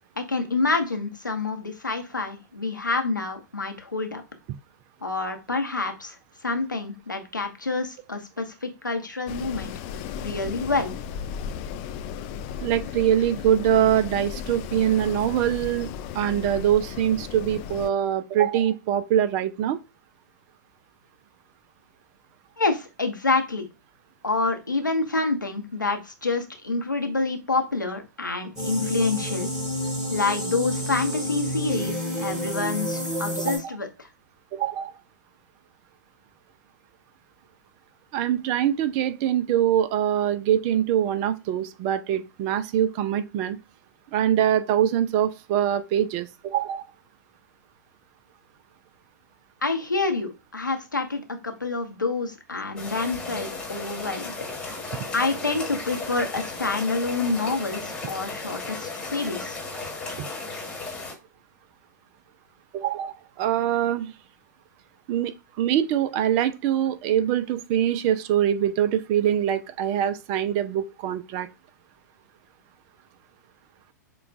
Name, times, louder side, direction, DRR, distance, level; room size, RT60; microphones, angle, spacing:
voice 1, 0.2-4.2 5.0-6.2 6.4-9.7 10.2-10.9 22.6-23.7 24.2-29.5 30.1-34.1 49.6-54.3 55.1-59.6, left 3 dB, 90° left, 0.8 m, -27 dB
Wind, 9.3-17.9, left 8 dB, 40° left, 0.4 m, -35 dB
voice 2, 12.6-15.9 16.1-19.8 33.4-33.8 34.5-34.9 38.1-43.6 44.1-46.9 60.2-60.3 62.7-64.1 65.1-71.5, right 10 dB, 35° right, 0.5 m, -24 dB
sound 1, 28.6-33.6, equal, 5° right, 1.7 m, -29 dB
sound 2, 52.8-61.1, left 3 dB, 10° left, 1.4 m, -35 dB
6.7 x 2.3 x 2.5 m
figure-of-eight pair, 100°, 10 cm